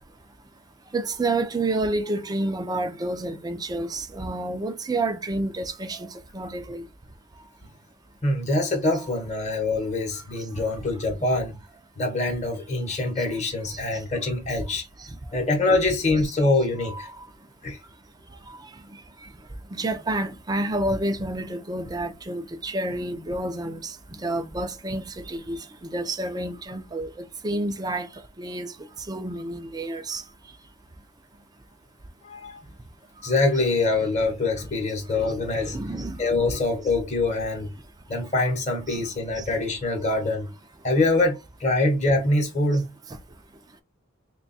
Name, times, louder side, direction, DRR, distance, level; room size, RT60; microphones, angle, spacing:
voice 1, 0.9-6.1 6.3-6.8 16.8-17.2 19.2-19.3 19.7-23.9 24.2-25.6 25.9-27.1 27.4-28.1 28.4-28.7 29.1-30.2 35.7-36.2 38.9-39.0 39.4-39.5, right 2 dB, 20° right, 0.5 m, -29 dB
voice 2, 8.2-11.5 12.0-14.9 15.3-17.1 17.6-17.8 32.2-32.6 33.2-35.8 36.2-37.7 38.1-40.5 40.8-42.9, left 2 dB, 35° left, 1.0 m, -24 dB
3.3 x 2.3 x 4.0 m
head